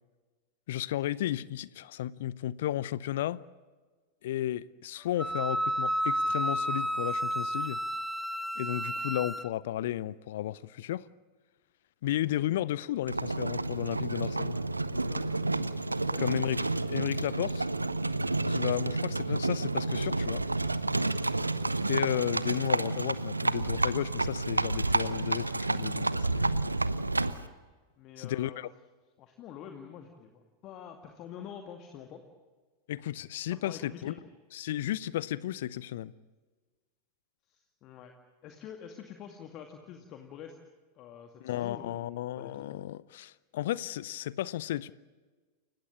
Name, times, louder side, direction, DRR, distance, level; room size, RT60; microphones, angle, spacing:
voice 1, 0.7-3.4 4.2-7.8 8.6-11.1 12.0-14.6 16.2-17.7 18.5-20.4 21.9-26.7 28.2-28.7 32.9-34.1 34.5-36.1 41.4-44.9, left 13 dB, 55° left, 0.6 m, -33 dB
Wind instrument woodwind instrument, 5.2-9.5, equal, ahead, 0.8 m, -31 dB
Livestock farm animals working animals, 13.1-27.5, right 2 dB, 80° right, 0.9 m, -30 dB
voice 2, 15.1-15.4 15.9-16.5 18.9-19.1 28.0-28.6 29.2-32.2 33.5-34.3 37.5-38.1 38.4-40.5 40.9-42.7, left 8 dB, 35° left, 2.2 m, -47 dB
29.0 x 15.5 x 8.6 m
figure-of-eight pair, 90°, 0 cm